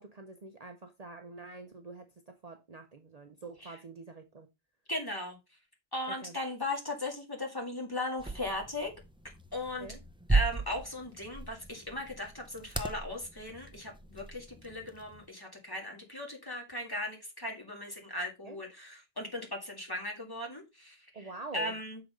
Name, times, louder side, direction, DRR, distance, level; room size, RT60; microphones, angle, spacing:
voice 1, 0.0-4.5 6.1-6.3 9.8-10.0 18.4-18.6 21.1-21.7, right 3 dB, 45° right, 0.8 m, -46 dB
voice 2, 4.9-5.4 5.9-8.9 9.5-9.9 10.3-22.0, left 1 dB, 20° left, 2.2 m, -38 dB
sound 1, 8.2-15.3, right 3 dB, 5° right, 0.4 m, -36 dB
6.7 x 4.0 x 5.0 m
omnidirectional pair, 1.0 m